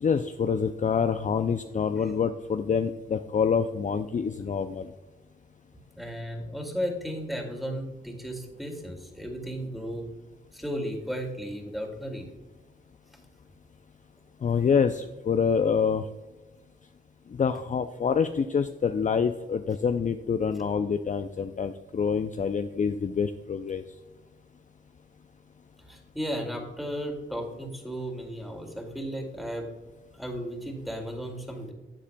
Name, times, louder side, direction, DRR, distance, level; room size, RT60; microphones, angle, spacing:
voice 1, 0.0-4.9 14.4-16.0 17.4-23.8, left 6 dB, 35° left, 9 dB, 0.4 m, -26 dB
voice 2, 6.0-10.1 10.5-12.3 25.9-29.6 30.1-31.7, equal, ahead, 2 dB, 2.3 m, -34 dB
11.0 x 7.3 x 2.2 m, 1.2 s
cardioid pair, 50°, 21 cm